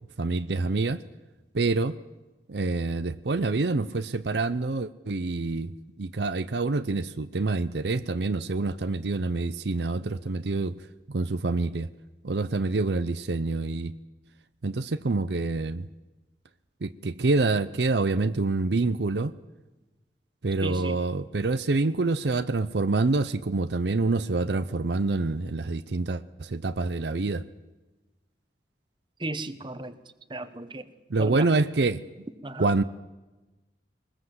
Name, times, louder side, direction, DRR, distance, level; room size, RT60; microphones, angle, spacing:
voice 1, 0.2-1.0 1.5-2.0 2.5-5.7 6.0-10.7 11.1-11.9 12.2-13.9 14.6-15.9 16.8-19.3 20.4-27.5 31.1-32.0 32.6-32.8, right 3 dB, 70° right, 13 dB, 0.6 m, -26 dB
voice 2, 20.6-21.0 29.2-29.9 30.3-30.9 31.2-31.5 32.4-32.7, right 2 dB, 25° right, 11 dB, 1.1 m, -35 dB
21.5 x 20.5 x 7.9 m, 1.1 s
head